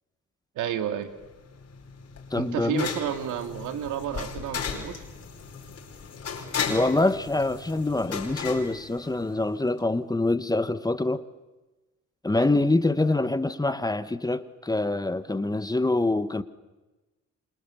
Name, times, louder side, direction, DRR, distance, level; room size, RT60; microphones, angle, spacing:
voice 1, 0.6-1.1 2.4-5.0 12.3-12.5, right 9 dB, 90° right, 2.2 m, -31 dB
sound 1, 1.2-9.5, left 6 dB, 55° left, 4.8 m, -36 dB
voice 2, 2.3-2.9 6.7-11.2 12.2-16.4, left 2 dB, 10° left, 1.2 m, -25 dB
28.5 x 25.5 x 7.1 m
cardioid pair, 90°, 30 cm